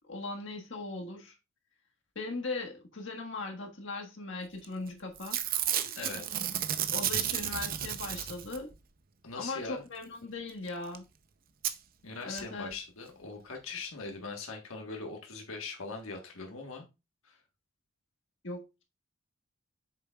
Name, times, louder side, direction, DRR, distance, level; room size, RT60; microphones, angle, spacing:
voice 1, 0.0-1.3 2.1-5.4 6.9-8.7 9.3-11.0 12.2-12.7 18.4-18.8, left 3 dB, 60° left, 1.6 m, -39 dB
Packing tape duct tape / Tearing, 4.6-4.9 5.2-8.8 10.7-10.8 10.9-11.0 11.6-11.7 12.4-12.5 12.7-12.8, right 10 dB, 45° right, 0.6 m, -32 dB
voice 2, 6.0-6.4 9.2-9.8 12.0-16.9 17.2-17.4, left 4 dB, 85° left, 1.4 m, -41 dB
8.1 x 6.6 x 2.4 m
head